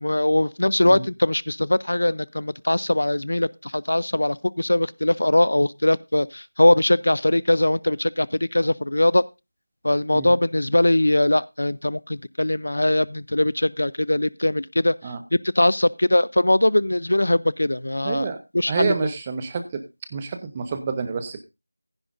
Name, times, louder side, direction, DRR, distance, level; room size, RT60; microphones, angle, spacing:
voice 1, 0.0-9.2 9.8-14.9 15.3-18.3 18.5-19.1, left 1 dB, 70° left, 21 dB, 0.5 m, -21 dB
voice 2, 18.0-18.4 18.7-19.8 20.1-21.4, right 5 dB, 15° right, 8 dB, 0.7 m, -28 dB
15.0 x 10.0 x 2.6 m, 0.24 s
figure-of-eight pair, 175°, 0 cm